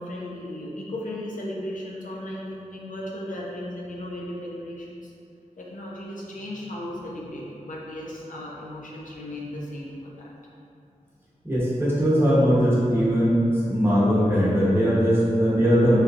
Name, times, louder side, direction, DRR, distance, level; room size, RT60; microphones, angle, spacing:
voice 1, 0.0-5.1 5.6-10.3 11.8-11.9, left 1 dB, 75° left, -5 dB, 0.5 m, -36 dB
voice 2, 11.4-13.4 13.7-16.0, equal, 15° right, -9 dB, 0.9 m, -20 dB
3.2 x 2.8 x 2.5 m, 2.6 s
wide cardioid pair, 80°, 14 cm